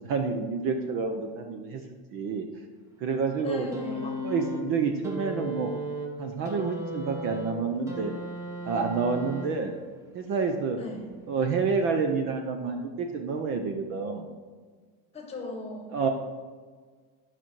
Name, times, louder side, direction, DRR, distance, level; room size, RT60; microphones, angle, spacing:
voice 1, 0.1-1.8 2.1-2.5 3.0-3.7 4.2-5.7 6.2-8.1 8.6-9.8 10.1-10.8 11.3-14.3 15.9-16.1, right 5 dB, 35° right, 5 dB, 0.7 m, -28 dB
voice 2, 3.4-4.2 10.8-11.1 15.1-16.0, left 2 dB, 15° left, 1 dB, 1.5 m, -38 dB
sound 1, 3.7-9.9 10.9-11.0, equal, 10° right, 0.9 m, -36 dB
11.5 x 6.0 x 4.7 m, 1.5 s
cardioid pair, 165°, 36 cm